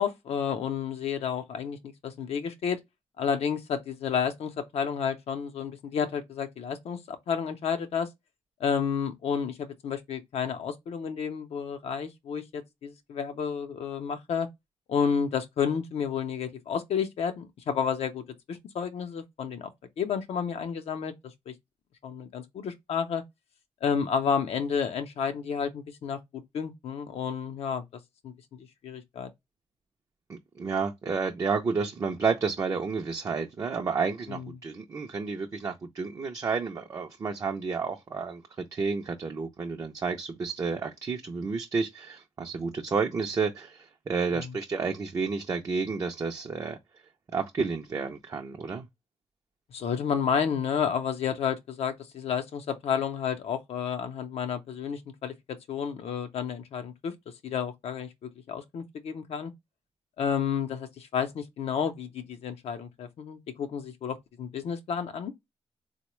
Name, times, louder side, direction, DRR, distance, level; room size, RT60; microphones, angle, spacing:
voice 1, 0.0-2.8 3.2-8.1 8.6-14.5 14.9-19.7 20.0-21.5 22.0-23.2 23.8-27.8 28.2-29.3 34.3-34.5 44.3-44.5 49.7-57.1 57.4-59.5 60.2-65.3, left 7 dB, 75° left, 0.6 m, -31 dB
voice 2, 30.3-46.8 47.3-48.8, right 5 dB, 30° right, 0.4 m, -31 dB
3.8 x 2.1 x 2.9 m
wide cardioid pair, 170°, 10 cm